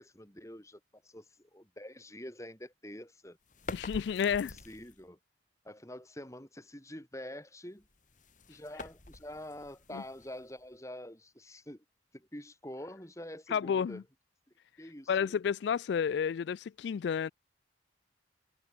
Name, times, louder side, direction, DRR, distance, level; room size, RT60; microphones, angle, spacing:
voice 1, 0.0-3.4 4.4-5.2 5.6-7.8 8.5-11.8 12.1-14.0 14.8-15.3, left 1 dB, 15° left, 4.9 m, -46 dB
sound 1, 3.5-5.1 7.8-10.7, left 2 dB, 40° left, 2.8 m, -47 dB
voice 2, 3.7-4.5 9.9-10.0 13.5-14.0 15.1-17.3, left 7 dB, 65° left, 0.3 m, -31 dB
head